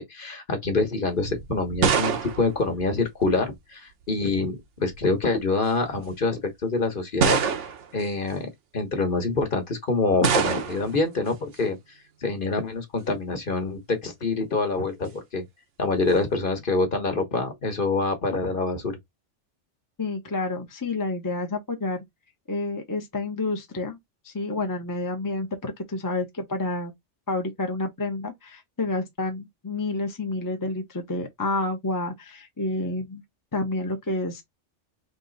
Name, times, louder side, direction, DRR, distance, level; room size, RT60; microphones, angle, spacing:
voice 1, 0.0-7.4 7.9-11.8 12.2-15.4 15.8-19.0, left 3 dB, 45° left, 1.3 m, -26 dB
sound 1, 1.2-3.6 4.6-5.0 5.9-6.0 7.2-8.0 10.2-11.0, right 6 dB, 80° right, 1.2 m, -25 dB
voice 2, 20.0-22.0 22.5-24.0 24.2-26.9 27.3-33.2 33.5-34.4, left 2 dB, 20° left, 0.7 m, -29 dB
3.7 x 3.0 x 3.9 m
omnidirectional pair, 1.2 m